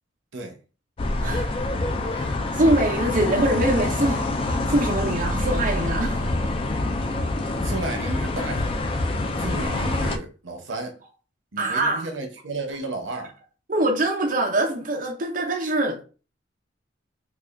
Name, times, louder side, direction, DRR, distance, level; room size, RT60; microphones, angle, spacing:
sound 1, 1.0-10.2, left 2 dB, 30° left, 0.3 m, -26 dB
voice 1, 2.1-6.3 11.6-12.1 13.7-16.0, right 1 dB, 45° right, 0.6 m, -24 dB
voice 2, 7.6-8.8 9.4-11.0 11.5-13.3, right 2 dB, 85° right, 0.9 m, -33 dB
4.8 x 2.3 x 2.5 m
head